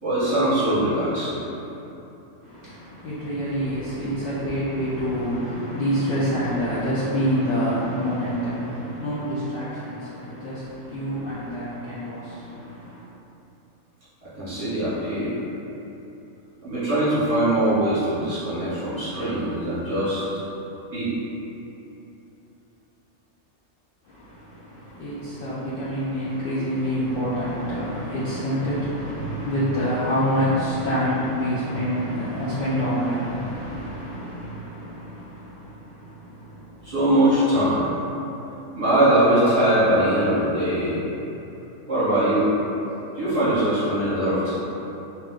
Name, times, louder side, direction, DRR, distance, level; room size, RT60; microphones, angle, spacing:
voice 1, 0.0-1.3 14.4-15.4 16.6-20.4 20.9-21.1 36.8-37.8 38.7-41.0 41.9-42.5 43.1-44.6, right 1 dB, 25° right, -14 dB, 1.0 m, -21 dB
voice 2, 2.4-13.0 24.0-36.9, equal, 80° left, -11 dB, 0.5 m, -27 dB
2.5 x 2.2 x 3.6 m, 3.0 s
omnidirectional pair, 1.6 m